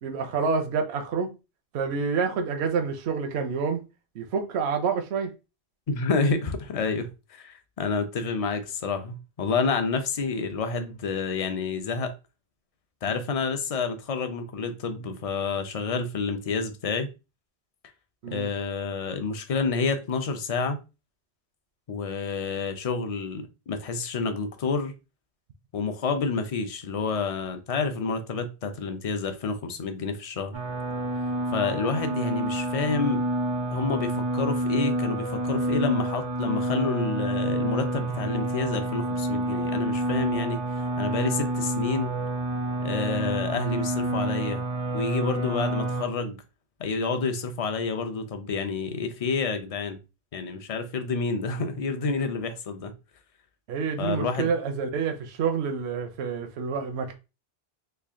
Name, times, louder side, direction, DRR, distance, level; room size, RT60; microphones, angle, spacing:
voice 1, 0.0-1.3 1.7-3.8 4.1-5.3 18.2-18.5 53.7-57.1, right 5 dB, 80° right, 0.9 m, -28 dB
voice 2, 5.9-12.1 13.0-17.1 18.3-20.8 21.9-24.9 25.7-30.6 31.5-33.2 33.7-40.6 41.0-42.2 42.8-44.6 44.9-46.4 46.8-50.0 50.3-52.9 54.0-54.5, left 4 dB, 45° left, 0.5 m, -29 dB
sound 1, 30.5-46.0, right 1 dB, 35° right, 0.5 m, -28 dB
3.3 x 2.4 x 3.6 m
omnidirectional pair, 1.1 m